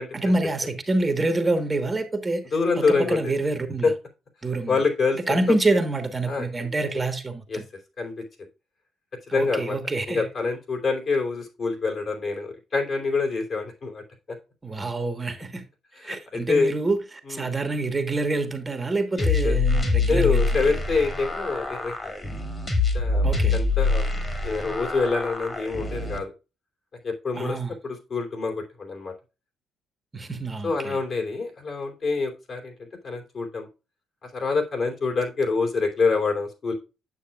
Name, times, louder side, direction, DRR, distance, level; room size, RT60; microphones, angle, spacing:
voice 1, 0.1-2.4 2.7-3.9 4.4-4.8 5.3-7.6 9.3-10.3 14.6-15.6 16.0-20.7 23.2-23.6 27.4-27.8 30.1-31.0, right 2 dB, 20° right, 1.2 m, -27 dB
voice 2, 2.5-3.3 3.8-3.9 4.7-5.4 6.3-6.7 7.5-7.6 8.0-8.1 9.3-9.8 10.1-14.0 16.0-16.7 17.3-17.4 19.2-19.5 20.1-22.1 22.9-26.3 27.0-27.6 27.8-29.1 30.6-32.7 33.0-33.7 34.2-36.7, left 4 dB, 50° left, 3.0 m, -26 dB
sound 1, 19.2-26.2, left 3 dB, 25° left, 2.0 m, -25 dB
8.7 x 6.9 x 2.3 m
cardioid pair, 90°, 0 cm